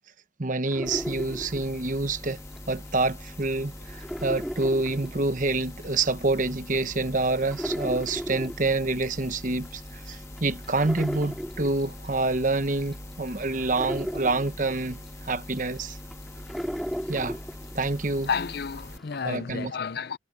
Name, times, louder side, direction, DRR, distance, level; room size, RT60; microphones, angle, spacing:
voice 1, 0.4-2.4 2.7-16.0 17.1-17.4 17.7-18.3 19.2-19.7, right 3 dB, 40° right, 1.0 m, -27 dB
sound 1, 0.7-2.9 3.3-18.4 18.8-19.3, equal, ahead, 2.8 m, -36 dB
sound 2, 0.9-19.0, left 1 dB, 15° left, 1.6 m, -42 dB
voice 2, 18.3-20.2, left 6 dB, 50° left, 0.6 m, -31 dB
head